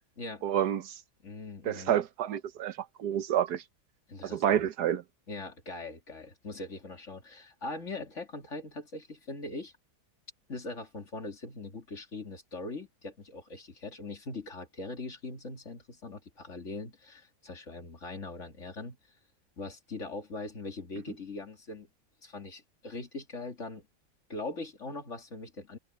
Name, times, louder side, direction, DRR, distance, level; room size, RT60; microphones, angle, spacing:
voice 1, 0.4-0.9 1.6-2.7 3.0-3.6 4.2-5.0, right 10 dB, 90° right, 1.5 m, -28 dB
voice 2, 1.2-2.0 4.1-4.6 5.3-9.7 10.5-19.0 19.6-21.9 22.2-23.9 24.3-25.8, left 3 dB, 45° left, 2.8 m, -41 dB
omnidirectional pair, 1.7 m